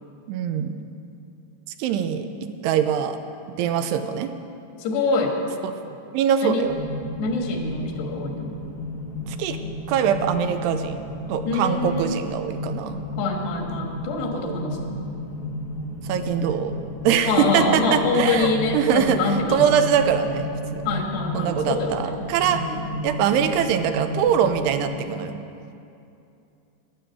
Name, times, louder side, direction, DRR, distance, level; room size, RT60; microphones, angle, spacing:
voice 1, 0.3-0.8 1.8-2.3 2.6-3.2 3.6-4.3 5.9-6.7 9.3-9.6 9.9-11.0 11.3-13.0 14.4-14.6 16.0-16.7 17.0-20.9 21.3-22.7 23.0-25.4, right 8 dB, 90° right, 8 dB, 2.8 m, -23 dB
voice 2, 4.8-5.4 6.4-6.6 7.2-8.5 11.5-12.2 13.2-15.0 17.3-19.6 20.9-22.2 22.5-22.8, left 3 dB, 80° left, 1 dB, 3.7 m, -25 dB
sound 1, 6.6-24.8, left 1 dB, 60° left, 1.1 m, -33 dB
11.5 x 10.5 x 8.1 m, 2.6 s
omnidirectional pair, 4.7 m